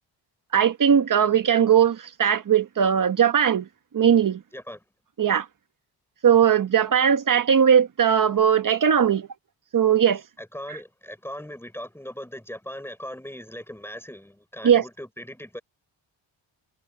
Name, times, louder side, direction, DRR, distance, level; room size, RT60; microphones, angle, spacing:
voice 1, 0.5-3.6 3.9-4.4 5.2-5.4 6.2-9.3 9.7-10.2 14.6-14.8, right 8 dB, 45° right, 1.4 m, -19 dB
voice 2, 4.5-4.8 10.4-15.6, equal, 5° left, 4.0 m, -39 dB
cardioid pair, 125°, 45 cm